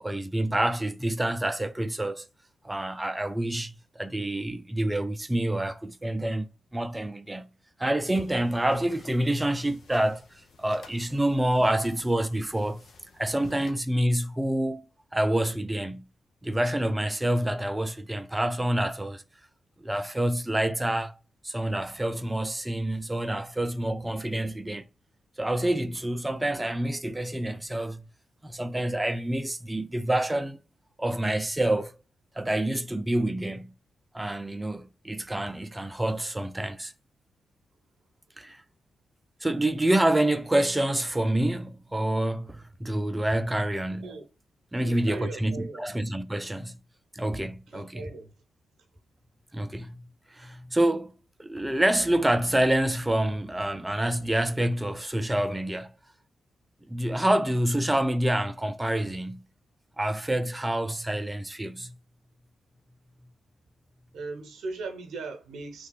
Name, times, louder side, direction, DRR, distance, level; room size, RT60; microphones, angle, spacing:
voice 1, 0.0-2.3 2.6-7.5 7.8-10.2 10.6-12.8 13.2-16.0 16.4-19.2 19.8-21.2 21.4-24.8 25.4-28.1 28.4-30.6 31.0-31.9 32.4-33.7 34.1-36.9 38.4-38.6 39.4-44.2 44.7-46.8 47.1-48.1 49.5-51.1 51.4-55.9 56.9-59.4 60.0-62.0, right 1 dB, 15° right, 0.5 m, -27 dB
sound 1, 8.1-13.7, left 4 dB, 65° left, 0.7 m, -53 dB
voice 2, 44.8-45.8 47.7-48.3 64.1-65.9, right 3 dB, 75° right, 0.8 m, -39 dB
3.2 x 2.4 x 3.8 m
hypercardioid pair, 40°, 0 cm